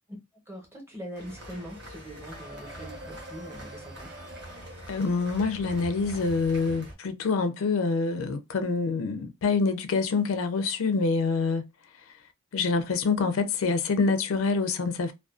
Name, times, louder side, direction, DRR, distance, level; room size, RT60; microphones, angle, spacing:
voice 1, 0.5-4.2, right 1 dB, 10° right, 0.8 m, -42 dB
sound 1, 1.2-6.9, right 1 dB, 55° right, 0.9 m, -43 dB
voice 2, 4.9-11.6 12.5-15.1, left 4 dB, 85° left, 0.4 m, -26 dB
2.4 x 2.2 x 2.3 m
head